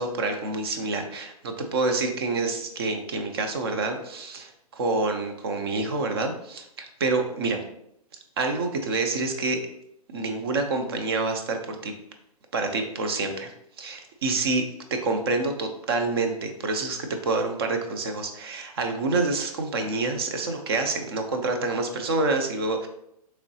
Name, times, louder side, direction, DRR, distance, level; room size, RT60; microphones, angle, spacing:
voice 1, 0.0-7.6 8.4-9.6 10.1-11.9 12.5-13.5 13.8-14.6 14.9-22.9, right 3 dB, 40° right, 5 dB, 0.5 m, -27 dB
3.7 x 3.1 x 2.7 m, 0.76 s
hypercardioid pair, 165°, 20 cm